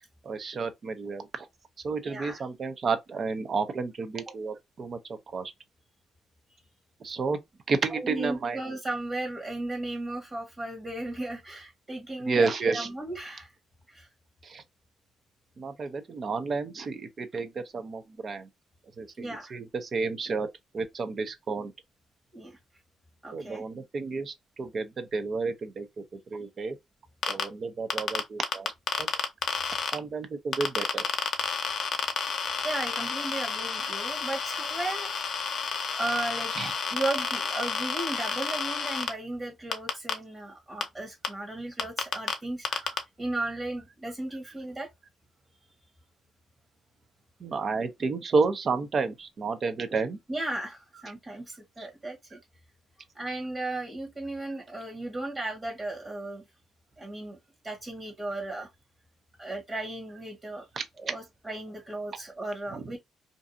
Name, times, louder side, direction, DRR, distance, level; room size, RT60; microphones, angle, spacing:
voice 1, 0.2-1.5 1.8-5.5 7.0-7.4 7.7-8.6 12.3-12.9 14.4-14.6 15.6-18.5 19.0-20.5 20.7-21.7 23.3-26.8 27.3-28.7 29.0-29.1 29.9-31.0 36.5-36.7 42.7-43.0 47.4-50.2 51.8-51.9 60.8-60.9 62.7-62.8, right 4 dB, 45° right, 0.6 m, -31 dB
voice 2, 2.0-2.4 4.3-4.4 7.9-13.5 13.9-14.1 19.2-19.5 22.3-22.6 23.2-23.6 32.6-35.3 36.0-36.5 36.9-42.7 43.2-44.9 50.3-52.4 53.1-56.4 57.0-57.4 57.6-58.7 59.4-60.7 61.0-63.0, right 2 dB, 30° right, 1.1 m, -35 dB
sound 1, 27.2-27.4 27.9-29.9 30.5-39.1 39.7-40.1 40.8-40.9 41.2-41.3 41.8-42.3 42.6-43.0, left 6 dB, 60° left, 0.6 m, -30 dB
2.6 x 2.4 x 2.5 m
cardioid pair, 90°, 0 cm